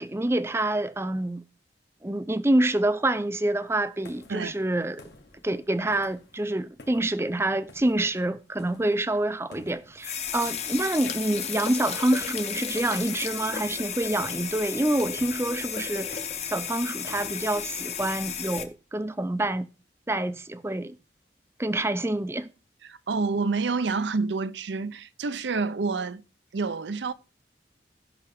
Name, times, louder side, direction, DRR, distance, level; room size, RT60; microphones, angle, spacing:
voice 1, 0.0-1.4 2.0-5.0 5.4-16.2 16.5-19.7 20.1-21.0 21.6-22.5, right 1 dB, 15° right, 0.5 m, -27 dB
sound 1, 3.6-18.3, left 3 dB, 70° left, 1.6 m, -53 dB
sound 2, 10.0-18.6, left 7 dB, 35° left, 0.9 m, -33 dB
voice 2, 22.8-26.2 26.5-27.1, right 4 dB, 80° right, 0.6 m, -28 dB
16.0 x 5.8 x 3.5 m
head